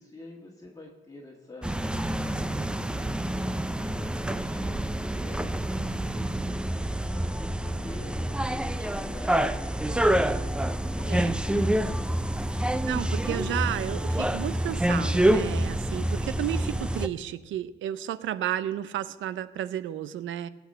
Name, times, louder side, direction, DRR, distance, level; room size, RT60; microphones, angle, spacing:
voice 1, 0.0-6.5 7.1-12.3, left 1 dB, 15° left, -1 dB, 1.5 m, -47 dB
sound 1, 1.6-17.1, right 1 dB, 5° right, 0.5 m, -27 dB
voice 2, 12.9-20.5, right 11 dB, 75° right, 15 dB, 0.6 m, -32 dB
17.5 x 6.2 x 6.3 m, 1.2 s
cardioid pair, 90°, 20 cm